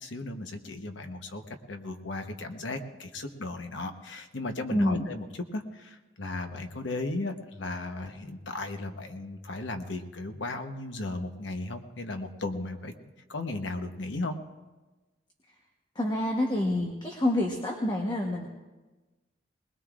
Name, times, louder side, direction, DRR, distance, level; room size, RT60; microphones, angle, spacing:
voice 1, 0.0-5.2 5.5-12.9 13.3-14.4, left 2 dB, 75° left, 6 dB, 1.1 m, -36 dB
voice 2, 4.7-5.0 15.9-18.5, left 1 dB, 25° left, 1 dB, 1.1 m, -27 dB
20.5 x 20.5 x 2.5 m, 1.2 s
head